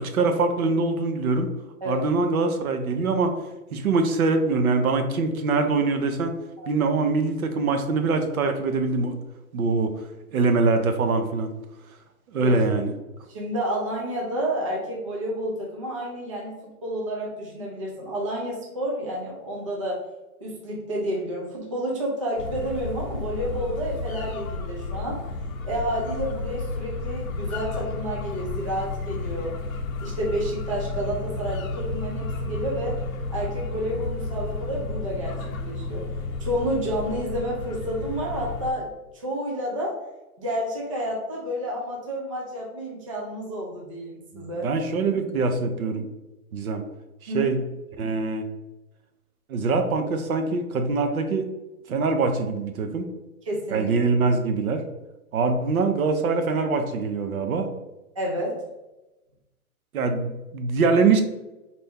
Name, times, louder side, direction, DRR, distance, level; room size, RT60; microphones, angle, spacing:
voice 1, 0.0-1.5 1.9-3.3 3.7-6.3 6.7-9.2 9.5-9.9 10.3-11.5 12.3-12.9 44.3-46.1 46.5-46.8 47.3-47.6 48.0-48.4 49.5-51.5 51.9-53.1 53.7-54.8 55.3-57.7 59.9-61.2, right 4 dB, 70° right, 6 dB, 0.8 m, -23 dB
voice 2, 13.3-20.0 20.4-25.2 25.6-29.6 30.0-33.0 33.3-36.1 36.4-38.9 39.1-40.0 40.4-44.7 47.3-47.5 53.5-53.9 58.2-58.6, equal, 25° right, -3 dB, 0.4 m, -30 dB
sound 1, 22.4-38.7, left 3 dB, 65° left, 0.7 m, -32 dB
4.4 x 2.6 x 3.4 m, 1.0 s
hypercardioid pair, 155°, 44 cm